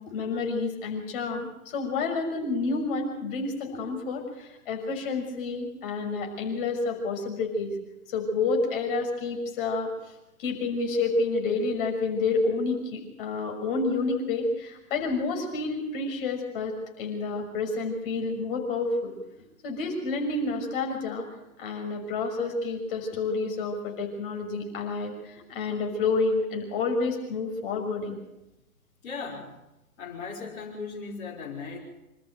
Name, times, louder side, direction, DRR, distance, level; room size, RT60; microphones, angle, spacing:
voice 1, 0.0-7.7 8.1-9.9 10.4-19.1 19.6-21.3 21.6-28.1, left 3 dB, 40° left, 2 dB, 6.2 m, -29 dB
voice 2, 29.0-29.6 30.0-31.8, left 4 dB, 55° left, -6 dB, 5.3 m, -37 dB
26.0 x 14.0 x 7.9 m, 0.95 s
hypercardioid pair, 145°, 44 cm